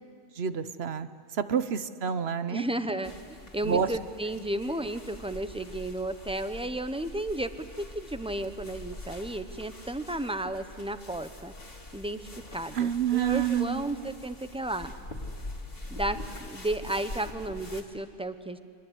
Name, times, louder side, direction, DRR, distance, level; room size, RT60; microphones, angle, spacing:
voice 1, 0.4-1.1 1.3-2.7 3.6-3.9 12.7-13.8, right 8 dB, 75° right, 12 dB, 1.2 m, -28 dB
voice 2, 2.5-11.5 11.9-14.9 15.9-18.6, right 1 dB, 5° right, 10 dB, 0.8 m, -33 dB
sound 1, 3.0-17.8, left 2 dB, 65° left, 2.7 m, -44 dB
29.5 x 23.5 x 8.2 m, 2.1 s
omnidirectional pair, 1.1 m